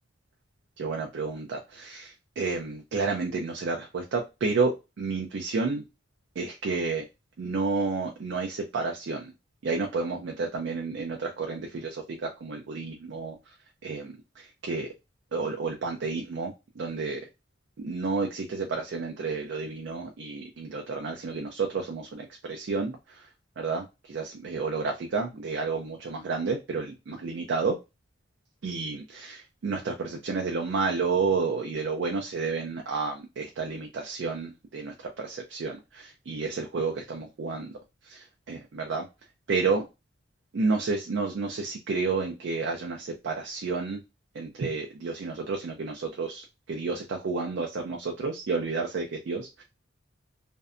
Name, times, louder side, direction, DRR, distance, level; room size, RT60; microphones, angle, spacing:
voice 1, 0.8-5.9 6.4-7.0 7.4-9.3 9.6-13.4 13.8-14.9 15.3-17.2 17.8-23.3 23.6-27.8 28.6-37.7 38.0-39.1 39.5-39.8 40.5-44.0 44.3-49.6, right 4 dB, 60° right, 2 dB, 0.4 m, -31 dB
2.6 x 2.1 x 2.4 m, 0.25 s
head